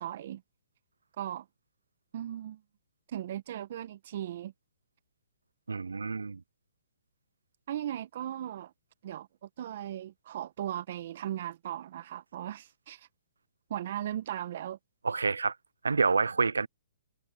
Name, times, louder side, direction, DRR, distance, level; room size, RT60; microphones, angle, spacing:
voice 1, 0.0-0.4 1.2-1.4 2.1-2.6 3.1-4.5 7.7-8.7 9.0-13.1 13.7-14.8, right 11 dB, 55° right, 1.1 m, -37 dB
voice 2, 5.7-6.4 15.0-15.5 15.8-16.7, right 4 dB, 90° right, 0.4 m, -28 dB
hypercardioid pair, 135°, 0 cm